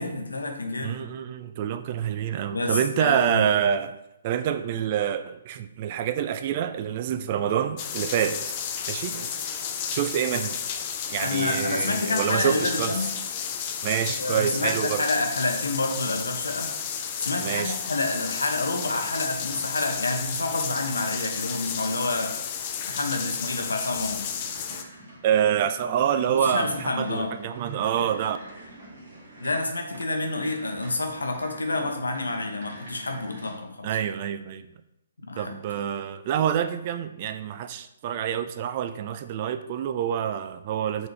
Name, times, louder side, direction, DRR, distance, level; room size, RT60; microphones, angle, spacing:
voice 1, 0.0-1.0 2.5-3.5 11.2-13.1 14.2-16.7 17.2-22.4 22.9-24.3 26.3-27.4 29.4-34.0 35.2-35.6, left 2 dB, 75° left, 4 dB, 0.8 m, -28 dB
voice 2, 0.8-3.9 4.2-8.5 8.9-9.3 9.9-10.6 11.1-12.9 13.8-15.0 17.4-17.8 25.2-28.4 33.8-34.7 35.4-41.1, right 9 dB, 35° right, 10 dB, 0.3 m, -27 dB
sound 1, 7.8-24.8, left 8 dB, 35° left, 0.4 m, -32 dB
sound 2, 18.0-33.5, right 1 dB, 55° right, 1.6 m, -47 dB
4.0 x 3.9 x 3.3 m, 0.84 s
figure-of-eight pair, 130°, 0 cm